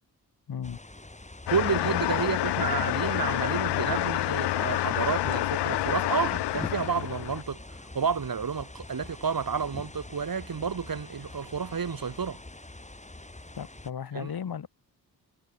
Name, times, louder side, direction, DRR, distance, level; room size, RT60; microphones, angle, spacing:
voice 1, 0.5-0.8 1.8-1.9 13.6-14.7, left 8 dB, 65° left, 2.7 m, -35 dB
sound 1, 0.6-13.9, left 2 dB, 15° left, 5.8 m, -45 dB
sound 2, 1.5-7.4, left 15 dB, 90° left, 0.9 m, -28 dB
voice 2, 1.5-12.4 14.1-14.3, right 6 dB, 60° right, 7.6 m, -30 dB
cardioid pair, 50°, 40 cm